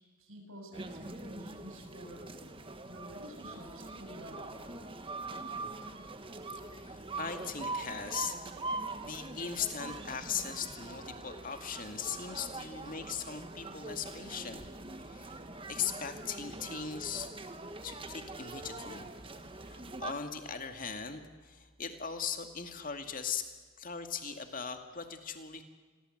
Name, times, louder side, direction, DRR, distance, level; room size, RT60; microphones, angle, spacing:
voice 1, 0.2-2.3 2.8-4.7, equal, 70° right, 3 dB, 6.8 m, -50 dB
sound 1, 0.7-20.1, right 2 dB, 25° right, 1.4 m, -43 dB
voice 2, 6.6-8.4 9.0-14.6 15.0-15.4 15.7-17.3 17.8-19.1 19.7-23.5 23.8-25.6, left 6 dB, 40° left, 6 dB, 2.2 m, -39 dB
27.5 x 22.0 x 7.9 m, 1.5 s
head